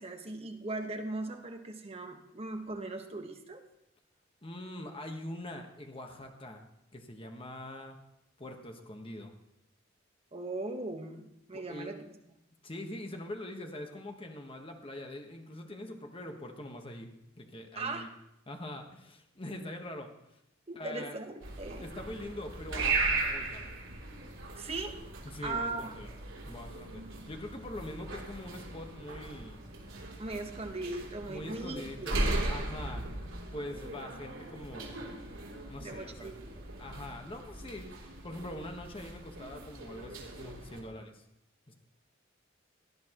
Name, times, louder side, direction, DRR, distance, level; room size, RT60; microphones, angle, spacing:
voice 1, 0.0-3.6 10.3-12.2 17.7-18.2 20.7-22.1 24.6-25.0 25.4-25.9 30.2-32.3 35.8-36.7, right 2 dB, 30° right, 3 dB, 1.2 m, -39 dB
voice 2, 4.4-6.6 6.9-8.0 8.4-9.3 11.5-11.9 12.6-17.1 17.4-18.1 18.5-20.1 20.7-21.1 21.8-23.7 25.2-26.1 26.5-29.6 31.3-32.2 32.4-33.0 33.5-34.9 35.7-36.3 36.8-41.2 41.7-41.8, left 1 dB, 30° left, 4 dB, 1.3 m, -43 dB
sound 1, 21.4-40.8, right 2 dB, 85° right, 3.0 m, -38 dB
17.5 x 10.5 x 3.0 m, 0.83 s
head